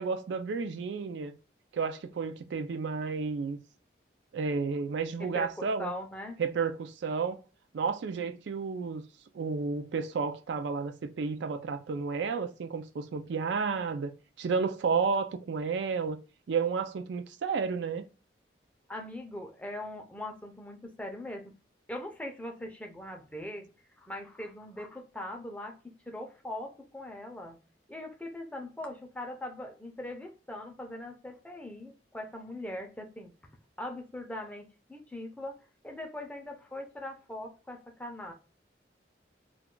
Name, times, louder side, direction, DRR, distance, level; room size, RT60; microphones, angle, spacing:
voice 1, 0.0-1.3 1.7-3.6 4.3-5.9 6.4-7.4 7.7-9.0 9.3-14.1 14.4-16.2 16.5-18.1, right 5 dB, 75° right, 0.4 m, -31 dB
voice 2, 5.2-6.4 18.9-21.5 21.9-23.7 24.0-27.6 27.9-33.3 33.8-38.3, left 1 dB, 5° left, 0.5 m, -41 dB
2.3 x 2.2 x 3.6 m
head